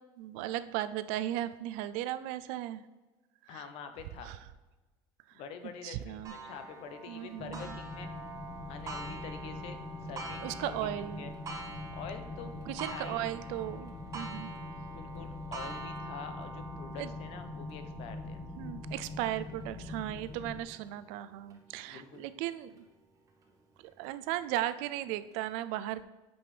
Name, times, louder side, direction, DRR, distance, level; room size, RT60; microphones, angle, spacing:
voice 1, 0.2-2.8 3.4-3.6 4.2-4.4 5.8-6.3 7.1-7.7 10.4-11.3 12.7-14.5 17.0-17.1 18.6-22.8 24.0-26.1, right 13 dB, 80° right, 13 dB, 0.4 m, -36 dB
voice 2, 3.5-4.3 5.3-8.1 8.7-9.8 10.1-11.3 11.9-12.6 12.8-13.4 14.9-18.4 21.9-22.3, left 6 dB, 60° left, 8 dB, 0.8 m, -46 dB
Clock, 6.2-21.6 22.1-22.2 22.8-22.9 23.8-23.9, right 3 dB, 30° right, 1.0 m, -46 dB
sound 1, 7.4-20.6, left 3 dB, 35° left, 1.2 m, -43 dB
8.6 x 5.3 x 3.3 m, 1.2 s
cardioid pair, 145°, 11 cm